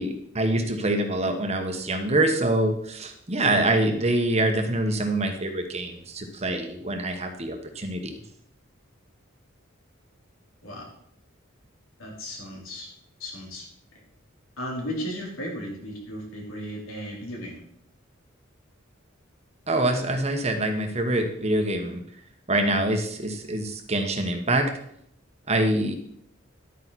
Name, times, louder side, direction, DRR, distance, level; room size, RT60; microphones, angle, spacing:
voice 1, 0.0-8.2 19.7-22.0 22.5-24.7 25.5-25.9, right 1 dB, 30° right, 5 dB, 1.3 m, -25 dB
voice 2, 12.0-12.9 13.2-13.7 13.9-14.0 14.6-17.6, equal, 85° left, -2 dB, 3.8 m, -35 dB
11.5 x 9.1 x 4.2 m, 0.68 s
head